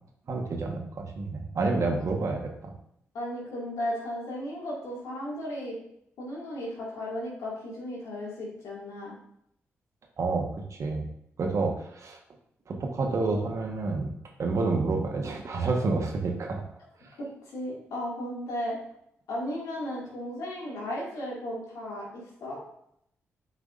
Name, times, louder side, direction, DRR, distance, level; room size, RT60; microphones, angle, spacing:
voice 1, 0.3-2.7 10.2-11.1 11.4-12.2 12.7-14.1 14.4-16.6 17.0-17.1, right 3 dB, 60° right, 2 dB, 1.2 m, -29 dB
voice 2, 3.1-5.8 6.2-9.1 17.5-18.8 19.3-22.6, left 1 dB, 80° left, -4 dB, 2.2 m, -35 dB
8.3 x 4.8 x 2.5 m, 0.74 s
supercardioid pair, 40°, 6 cm